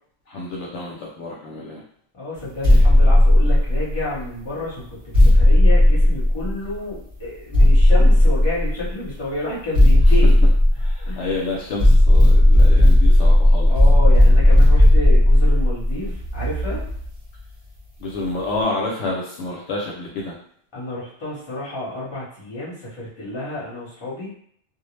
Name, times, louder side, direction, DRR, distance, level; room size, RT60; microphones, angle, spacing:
voice 1, 0.3-1.8 10.8-13.7 18.0-20.3, left 2 dB, 70° left, -3 dB, 0.9 m, -29 dB
voice 2, 2.1-10.4 10.7-11.5 13.7-16.8 20.7-24.3, left 1 dB, 25° left, -7 dB, 0.9 m, -30 dB
sound 1, 2.6-4.1 5.1-6.7 7.5-8.9 9.7-11.3 11.8-17.1, left 1 dB, 40° right, 0.8 m, -14 dB
2.4 x 2.0 x 3.1 m, 0.64 s
omnidirectional pair, 1.3 m